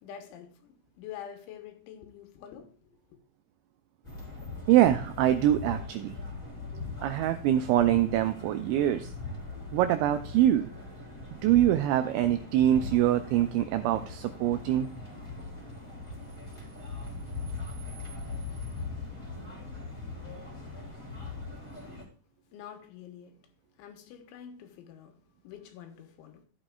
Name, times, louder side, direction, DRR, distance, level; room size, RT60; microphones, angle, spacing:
voice 1, 0.0-2.7 21.8-21.9 22.5-23.4 23.8-25.2 25.4-26.4, left 9 dB, 75° left, 3.3 m, -46 dB
sound 1, 4.0-22.0, left 3 dB, 5° left, 2.5 m, -40 dB
voice 2, 4.7-6.1 7.0-9.1 9.7-10.7 11.4-14.9, right 12 dB, 85° right, 2.6 m, -24 dB
14.5 x 8.8 x 2.4 m
omnidirectional pair, 5.8 m